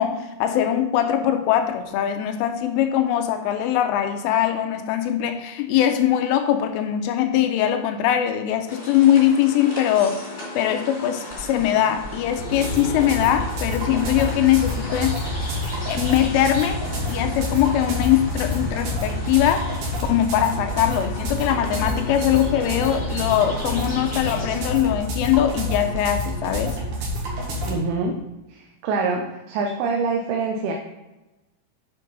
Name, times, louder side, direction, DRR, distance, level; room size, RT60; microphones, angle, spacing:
voice 1, 0.0-10.2 10.6-15.2 15.9-16.8 17.1-19.7 20.1-26.8, left 11 dB, 80° left, 6 dB, 3.1 m, -21 dB
sound 1, 8.7-24.6, left 2 dB, 20° left, 2.2 m, -34 dB
sound 2, 11.3-11.6 11.9-12.3 12.6-12.9 13.3-13.6 14.0-14.3 14.6-14.9 15.3-15.6 15.9-16.3 16.6-16.9 17.3-17.6 17.9-18.3 18.6-18.9 19.3-19.6 19.9-20.3 20.6-20.9 21.2-21.4 21.8-22.0 22.4-22.6 22.9-23.2 23.5-23.8 24.1-24.4 24.7-24.9 25.3-25.5 25.8-26.1 26.4-26.7 27.0-27.3, left 1 dB, 40° right, 0.8 m, -40 dB
sound 3, 12.4-27.7, left 1 dB, 60° right, 2.2 m, -29 dB
voice 2, 27.6-28.2 28.5-30.7, right 4 dB, 80° right, 2 dB, 3.1 m, -25 dB
10.0 x 5.7 x 4.0 m, 1.0 s
omnidirectional pair, 5.8 m